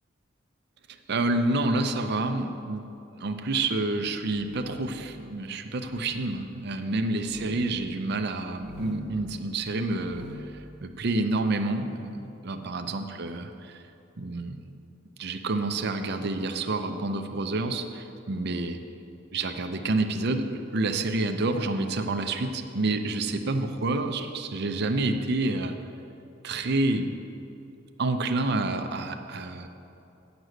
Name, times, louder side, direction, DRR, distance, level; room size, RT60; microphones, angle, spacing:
voice 1, 1.1-2.8 3.2-10.2 10.8-13.8 14.2-14.7 15.2-18.8 19.3-25.8 26.4-27.1 28.0-29.7, right 2 dB, 55° right, 6 dB, 0.6 m, -28 dB
sound 1, 4.1-5.0 5.8-6.1 7.1-7.6 8.4-9.2 9.8-10.5, left 2 dB, 10° right, 1.2 m, -45 dB
8.0 x 6.1 x 7.7 m, 2.8 s
head